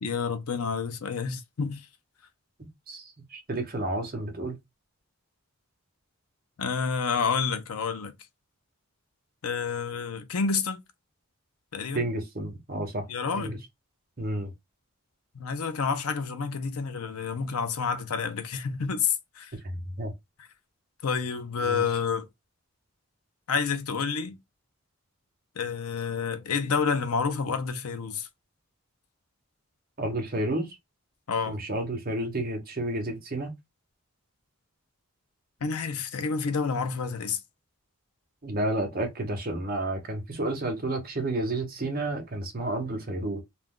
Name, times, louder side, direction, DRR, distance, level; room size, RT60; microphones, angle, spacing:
voice 1, 0.0-1.9 6.6-8.1 9.4-10.8 11.7-12.1 13.1-13.6 15.3-19.5 21.0-22.3 23.5-24.4 25.6-28.3 31.3-31.6 35.6-37.4, left 5 dB, 75° left, 0.5 m, -29 dB
voice 2, 2.6-4.6 11.9-13.1 13.4-13.6 14.2-14.5 20.0-20.1 21.6-21.8 30.0-30.7 31.5-33.5 38.4-43.4, right 2 dB, 40° right, 0.8 m, -31 dB
2.4 x 2.2 x 3.6 m
head